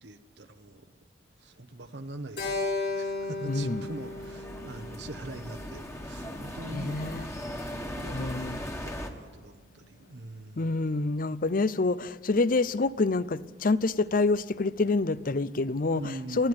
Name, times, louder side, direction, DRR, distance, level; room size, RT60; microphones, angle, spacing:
voice 1, 0.0-0.9 1.4-2.5 3.0-10.7 15.9-16.5, right 2 dB, 65° right, 1.1 m, -43 dB
Keyboard (musical), 2.4-6.8, left 3 dB, 70° left, 7.4 m, -35 dB
sound 1, 3.1-9.1, equal, 15° left, 1.7 m, -39 dB
voice 2, 3.5-3.8 6.7-7.3 8.1-8.6 10.6-16.5, left 3 dB, 50° left, 0.6 m, -27 dB
20.5 x 13.5 x 9.7 m
head